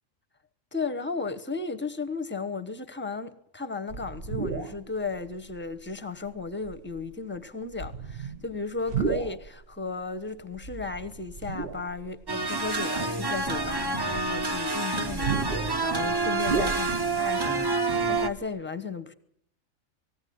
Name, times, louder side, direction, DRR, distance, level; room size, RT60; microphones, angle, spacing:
voice 1, 0.7-19.1, left 4 dB, 10° left, 1.0 m, -35 dB
sound 1, 3.9-4.8 5.5-5.6 6.6-7.0 7.7-9.5 10.6-12.2 12.7-12.8 13.4-17.3 17.6-17.7 17.9-18.4, right 5 dB, 50° right, 1.1 m, -33 dB
sound 2, 12.3-18.3, right 3 dB, 20° right, 0.9 m, -28 dB
19.0 x 17.0 x 9.4 m
omnidirectional pair, 1.4 m